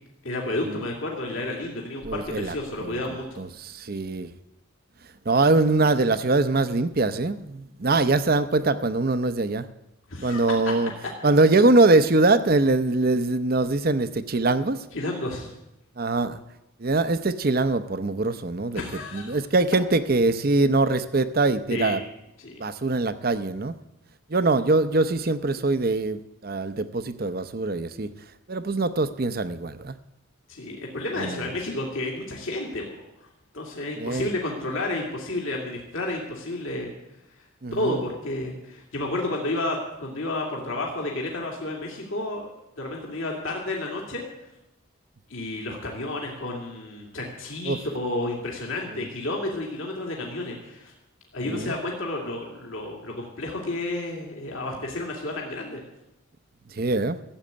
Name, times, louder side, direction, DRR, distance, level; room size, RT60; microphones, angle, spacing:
voice 1, 0.2-3.4 10.1-10.7 14.9-15.5 18.7-19.4 21.7-22.0 22.4-22.6 30.5-33.0 33.5-36.9 37.7-42.5 42.8-44.2 45.3-50.9 51.3-55.8, left 2 dB, 70° left, -1 dB, 2.4 m, -31 dB
voice 2, 2.0-2.5 2.8-3.0 3.4-4.3 5.3-9.7 10.2-10.9 11.2-14.8 16.0-16.4 16.8-18.8 19.1-22.0 22.6-23.8 24.3-28.1 28.5-29.9 31.2-31.5 34.0-34.3 37.6-38.0 47.7-47.8 48.9-49.0 51.5-51.7 56.8-57.2, right 2 dB, 45° right, 12 dB, 0.7 m, -23 dB
14.5 x 8.0 x 8.5 m, 0.88 s
head